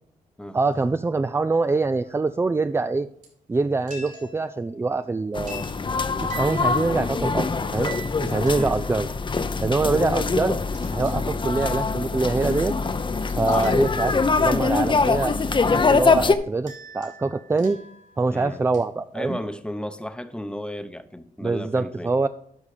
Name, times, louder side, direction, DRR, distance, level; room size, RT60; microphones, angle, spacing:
voice 1, 0.5-3.1 3.5-5.6 6.2-9.1 9.6-10.6 10.9-12.7 13.4-14.1 14.4-15.4 15.7-17.8 18.2-19.4 21.4-22.3, right 3 dB, 15° right, 0.4 m, -24 dB
sound 1, 2.0-2.6 3.2-3.3 3.9-5.0 5.5-5.9 6.2-7.3 7.8-9.3 9.7-10.2 10.7-12.1 12.5-14.2 15.8-15.9 16.7-18.4 18.7-18.8, right 3 dB, 65° right, 4.7 m, -44 dB
sound 2, 5.3-16.3, left 4 dB, 35° left, 0.8 m, -23 dB
voice 2, 18.3-18.6 19.1-22.3, left 1 dB, 5° left, 0.9 m, -34 dB
11.5 x 5.5 x 4.9 m
cardioid pair, 70°, 15 cm